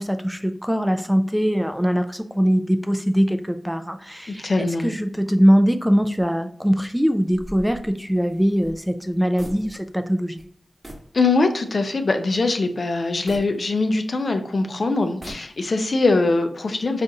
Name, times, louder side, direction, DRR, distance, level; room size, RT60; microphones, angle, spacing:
voice 1, 0.0-10.4, equal, ahead, 8 dB, 0.3 m, -21 dB
voice 2, 4.3-4.9 11.1-17.0, left 3 dB, 60° left, 6 dB, 0.5 m, -22 dB
sound 1, 7.3-10.1 10.4-10.5 10.8-11.2 11.6-11.7 13.3-14.3 15.0-15.9, equal, 25° right, 1.1 m, -41 dB
3.9 x 2.5 x 2.6 m, 0.63 s
cardioid pair, 50°, 0 cm